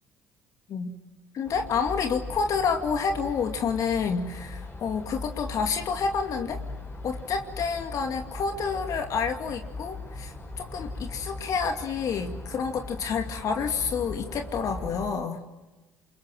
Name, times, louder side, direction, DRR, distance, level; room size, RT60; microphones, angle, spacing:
voice 1, 1.3-6.6 7.0-15.4, left 5 dB, 55° left, 5 dB, 2.4 m, -29 dB
sound 1, 1.4-15.1, left 2 dB, 30° left, 6.9 m, -39 dB
27.5 x 23.5 x 7.7 m, 1.1 s
hypercardioid pair, 70°, 7 cm